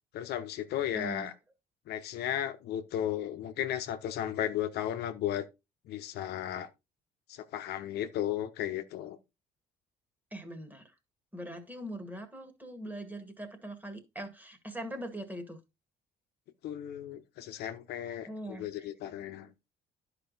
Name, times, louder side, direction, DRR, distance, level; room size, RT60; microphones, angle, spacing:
voice 1, 0.1-1.3 1.9-5.5 5.8-6.7 7.3-9.2 16.6-19.5, left 11 dB, 75° left, 0.9 m, -35 dB
voice 2, 0.9-1.3 10.3-10.9 11.3-15.6 18.2-18.7, right 1 dB, 10° right, 1.9 m, -41 dB
10.5 x 5.0 x 4.0 m
cardioid pair, 110°, 17 cm